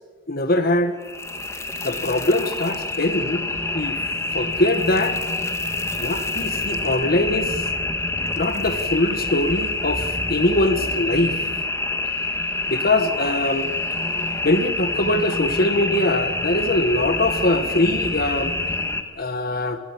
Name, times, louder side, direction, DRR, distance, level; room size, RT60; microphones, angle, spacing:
voice 1, 0.3-0.9 1.8-3.4 3.7-4.0 4.3-5.2 6.0-7.6 8.3-11.4 12.7-13.7 14.4-18.5 19.2-19.8, left 1 dB, 50° left, 9 dB, 1.6 m, -22 dB
sound 1, 1.0-19.0, left 2 dB, 15° left, 1.8 m, -26 dB
28.0 x 22.0 x 7.4 m, 1.4 s
head